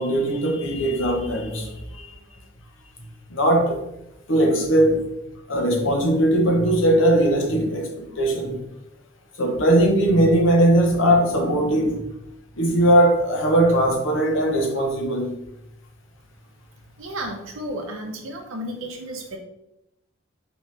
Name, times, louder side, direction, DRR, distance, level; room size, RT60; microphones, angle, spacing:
voice 1, 0.0-2.1 3.3-3.8 4.3-5.1 5.5-8.6 9.4-12.0 12.6-15.3, right 1 dB, 65° left, 1 dB, 0.9 m, -19 dB
voice 2, 17.0-19.4, right 1 dB, 80° right, 2 dB, 0.6 m, -33 dB
4.4 x 3.0 x 3.2 m, 0.87 s
head